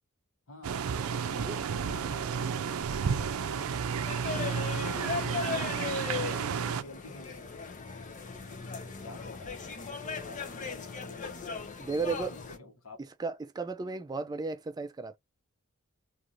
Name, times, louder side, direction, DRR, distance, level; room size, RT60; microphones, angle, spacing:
voice 1, 0.5-0.9 1.1-2.8 3.0-3.8 4.6-7.7 8.5-8.7 9.0-13.0, left 2 dB, 75° left, 1.1 m, -50 dB
sound 1, 0.6-6.8, right 6 dB, 85° right, 0.4 m, -32 dB
voice 2, 2.4-2.9 11.8-12.3 13.2-15.2, right 4 dB, 20° right, 0.3 m, -35 dB
sound 2, 4.1-12.6, left 5 dB, 35° left, 0.6 m, -38 dB
2.5 x 2.5 x 2.9 m
head